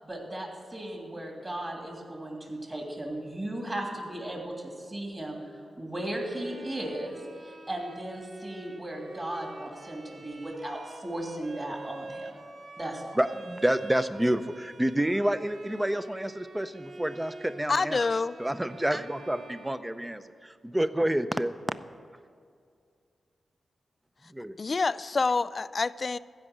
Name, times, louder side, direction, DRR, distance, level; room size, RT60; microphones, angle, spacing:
voice 1, 0.0-12.3 12.8-13.2, right 1 dB, 25° right, 3.0 m, -36 dB
Bowed string instrument, 6.2-20.4, right 2 dB, 60° right, 1.1 m, -46 dB
voice 2, 13.2-18.0 18.4-21.5 24.3-24.6, right 1 dB, 10° right, 0.6 m, -28 dB
voice 3, 17.7-18.4 24.6-26.2, left 4 dB, 45° left, 0.3 m, -27 dB
15.0 x 5.5 x 9.1 m
cardioid pair, 70°, 0 cm